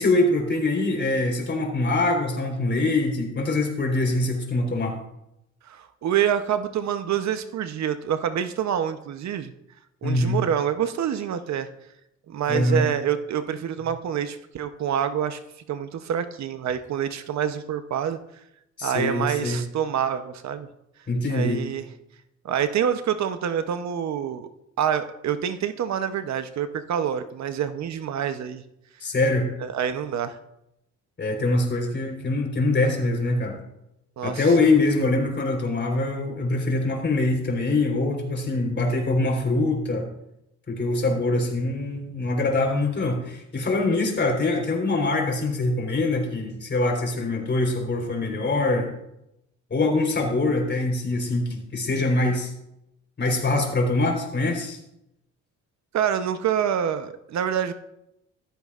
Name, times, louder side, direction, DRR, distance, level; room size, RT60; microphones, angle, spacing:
voice 1, 0.0-5.0 10.0-10.4 12.5-12.9 18.8-19.6 21.1-21.6 29.0-29.5 31.2-33.6 34.2-40.1 40.7-48.9 49.7-52.5 53.2-54.8, left 2 dB, 35° left, 1 dB, 4.1 m, -24 dB
voice 2, 5.7-9.5 10.0-11.7 12.3-15.4 15.7-18.2 18.8-20.7 21.3-21.8 22.4-24.5 24.8-28.6 29.6-30.4 34.2-34.5 55.9-57.7, right 9 dB, 65° right, 10 dB, 0.9 m, -26 dB
15.0 x 13.5 x 2.5 m, 0.84 s
cardioid pair, 90°, 30 cm